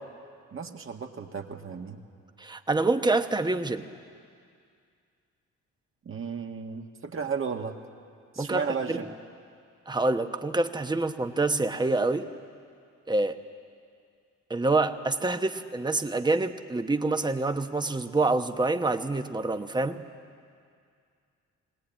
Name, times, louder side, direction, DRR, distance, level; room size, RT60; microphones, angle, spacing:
voice 1, 0.5-2.0 6.0-7.8 8.3-9.0, right 6 dB, 45° right, 3 dB, 1.8 m, -34 dB
voice 2, 2.4-3.9 8.4-9.0 9.9-12.3 13.1-13.4 14.5-20.0, right 2 dB, 15° right, 8 dB, 1.0 m, -26 dB
22.0 x 18.5 x 9.0 m, 2.3 s
cardioid pair, 90°, 30 cm